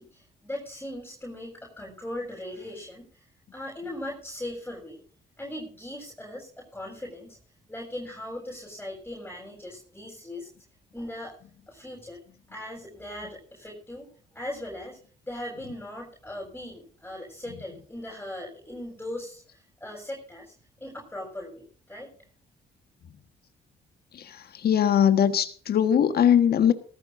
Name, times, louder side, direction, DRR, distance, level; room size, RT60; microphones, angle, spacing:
voice 1, 0.0-3.3 3.5-5.0 5.4-7.4 7.7-10.5 10.9-11.3 11.7-12.2 12.5-15.0 15.2-22.1, left 1 dB, 10° left, 7.3 m, -39 dB
voice 2, 24.6-26.7, left 9 dB, 60° left, 1.5 m, -20 dB
18.0 x 15.0 x 2.7 m
supercardioid pair, 65°, 18 cm